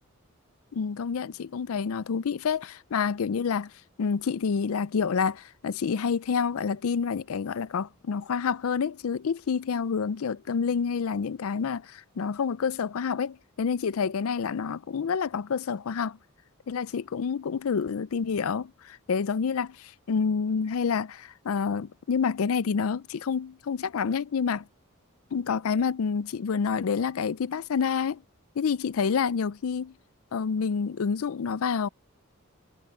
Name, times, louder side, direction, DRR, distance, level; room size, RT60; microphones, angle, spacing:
voice 1, 0.7-3.7 4.0-16.2 16.7-24.6 25.3-28.2 28.6-29.9 30.3-31.9, left 6 dB, 80° left, 0.4 m, -28 dB
head